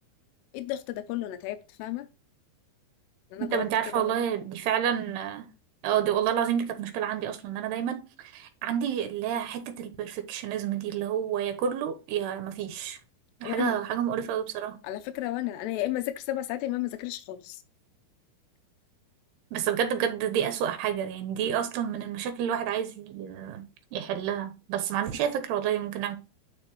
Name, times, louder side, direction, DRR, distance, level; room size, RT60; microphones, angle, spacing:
voice 1, 0.5-2.1 3.3-3.6 3.9-4.1 13.4-13.8 14.8-17.6, left 14 dB, 90° left, 2.8 m, -33 dB
voice 2, 3.4-5.5 5.8-13.0 13.4-14.8 19.5-26.2, right 9 dB, 80° right, 3.2 m, -29 dB
10.5 x 4.8 x 3.1 m
omnidirectional pair, 4.7 m